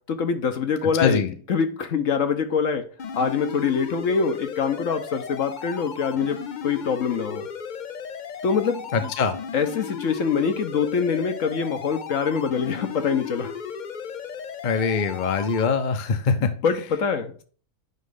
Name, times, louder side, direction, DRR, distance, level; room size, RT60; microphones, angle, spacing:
voice 1, 0.1-1.2 1.5-2.9 3.1-7.5 8.4-9.1 9.5-13.6 16.4-17.4, left 6 dB, 65° left, 1.2 m, -24 dB
voice 2, 1.0-1.3 8.9-9.4 14.6-16.5, left 5 dB, 40° left, 0.8 m, -23 dB
sound 1, 3.0-15.7, left 7 dB, 80° left, 0.4 m, -35 dB
9.4 x 3.1 x 3.7 m
omnidirectional pair, 1.5 m